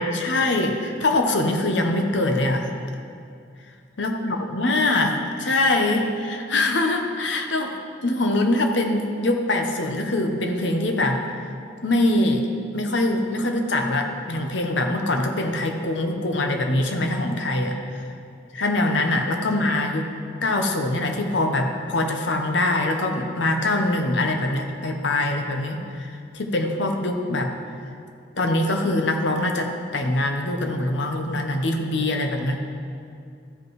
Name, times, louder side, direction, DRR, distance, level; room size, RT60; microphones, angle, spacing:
voice 1, 0.0-2.7 4.0-7.7 8.0-11.2 11.8-12.4 12.7-18.1 18.5-20.1 20.4-27.5 28.4-32.6, left 2 dB, 70° left, 3 dB, 1.0 m, -23 dB
13.5 x 5.2 x 4.7 m, 2.4 s
head